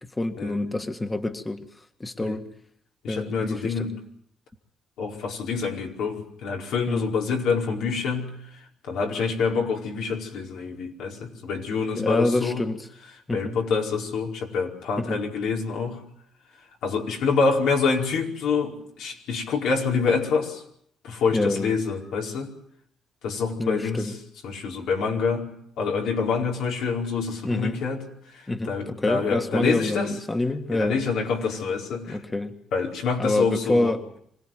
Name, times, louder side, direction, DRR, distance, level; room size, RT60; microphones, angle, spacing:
voice 1, 0.0-2.5 3.1-3.8 6.9-7.2 11.9-12.9 13.3-13.6 15.0-15.2 21.3-21.8 23.6-24.1 27.4-27.8 28.5-31.0 32.1-32.6 33.2-34.0, left 2 dB, 20° left, 7 dB, 1.7 m, -27 dB
voice 2, 3.0-4.0 5.0-8.4 8.8-12.6 13.3-16.0 16.8-20.6 21.0-22.5 23.2-24.1 24.4-25.5 25.8-30.1 30.7-32.2 32.7-34.2, left 5 dB, 85° left, 0 dB, 4.8 m, -26 dB
25.5 x 17.5 x 9.3 m, 0.69 s
cardioid pair, 90°, 0 cm